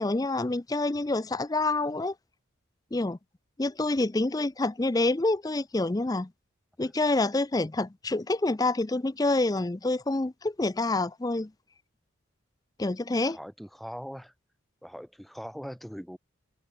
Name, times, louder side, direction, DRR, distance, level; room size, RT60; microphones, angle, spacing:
voice 1, 0.0-2.1 2.9-3.2 3.6-6.3 6.8-11.5 12.8-13.4, left 2 dB, 15° left, 0.4 m, -27 dB
voice 2, 13.2-14.3 14.8-16.2, equal, ahead, 3.8 m, -41 dB
head